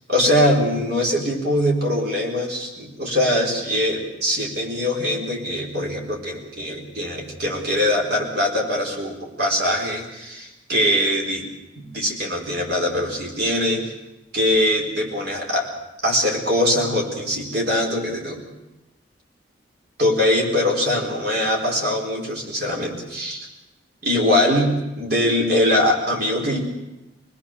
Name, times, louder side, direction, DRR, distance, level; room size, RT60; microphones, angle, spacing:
voice 1, 0.1-11.5 11.7-13.9 14.3-15.7 16.0-18.4 20.0-23.5 24.0-26.6, left 1 dB, 50° right, 0 dB, 4.7 m, -22 dB
25.0 x 19.5 x 6.9 m, 0.98 s
head